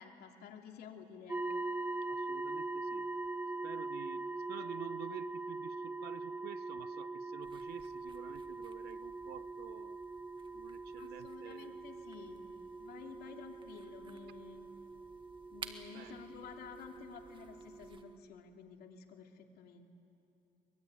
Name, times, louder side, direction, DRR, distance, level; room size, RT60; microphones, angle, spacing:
voice 1, 0.0-1.4 11.0-12.4 12.8-14.7 15.5-19.9, left 7 dB, 70° left, 3 dB, 2.6 m, -52 dB
sound 1, 1.3-18.2, right 3 dB, 10° right, 0.8 m, -42 dB
voice 2, 2.1-3.1 3.6-10.0 10.5-11.8 15.9-16.2, right 12 dB, 70° right, 16 dB, 0.8 m, -50 dB
sound 2, 7.4-18.0, right 4 dB, 30° right, 1.7 m, -56 dB
23.5 x 22.5 x 9.4 m, 2.9 s
cardioid pair, 110°, 17 cm